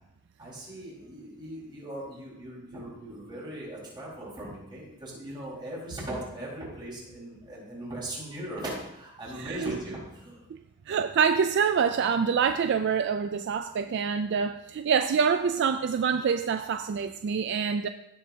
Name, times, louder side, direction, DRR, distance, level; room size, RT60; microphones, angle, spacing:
voice 1, 0.4-10.4, right 1 dB, 20° right, -7 dB, 4.5 m, -39 dB
voice 2, 9.4-9.7 10.9-17.9, right 6 dB, 55° right, 9 dB, 0.3 m, -26 dB
16.0 x 7.6 x 2.8 m, 0.87 s
head